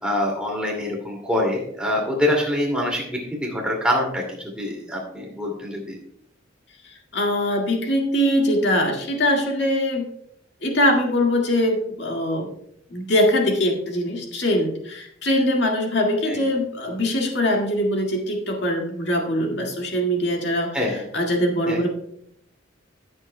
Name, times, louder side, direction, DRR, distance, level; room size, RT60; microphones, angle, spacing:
voice 1, 0.0-6.0 16.3-16.4 20.7-21.0 21.7-21.8, left 1 dB, 5° right, -1 dB, 2.3 m, -25 dB
voice 2, 7.1-10.1 10.6-12.5 12.9-20.8 21.1-21.9, left 1 dB, 65° left, 1 dB, 1.9 m, -22 dB
15.5 x 7.9 x 2.2 m, 0.72 s
head